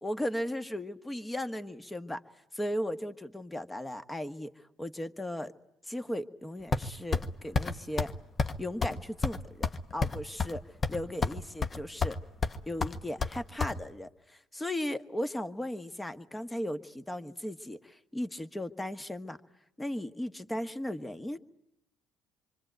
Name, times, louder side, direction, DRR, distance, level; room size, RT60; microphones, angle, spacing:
voice 1, 0.0-2.2 2.5-4.5 4.8-5.5 5.8-8.1 8.6-10.6 10.9-12.2 12.7-19.4 19.8-21.4, left 1 dB, 15° left, 11 dB, 1.5 m, -36 dB
sound 1, 6.7-7.3 7.5-7.7 8.0-8.1 8.4-8.5 8.8-8.9 9.2-10.5 10.8-11.4 11.6-12.2 12.4-13.7, left 4 dB, 35° left, 1.4 m, -29 dB
25.5 x 25.0 x 9.2 m, 0.82 s
hypercardioid pair, 60°, 0 cm